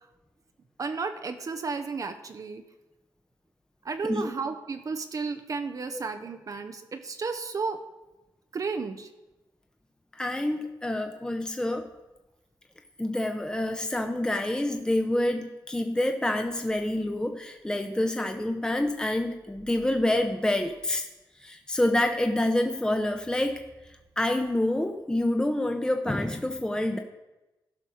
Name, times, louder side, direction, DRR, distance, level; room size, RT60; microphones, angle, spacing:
voice 1, 0.8-2.6 3.8-7.8 8.5-9.1, right 4 dB, 50° right, 7 dB, 0.8 m, -33 dB
voice 2, 10.1-11.9 13.0-21.1 21.4-23.6 24.2-27.0, left 1 dB, 10° left, 5 dB, 0.9 m, -27 dB
14.0 x 5.3 x 6.4 m, 1.0 s
cardioid pair, 70°, 8 cm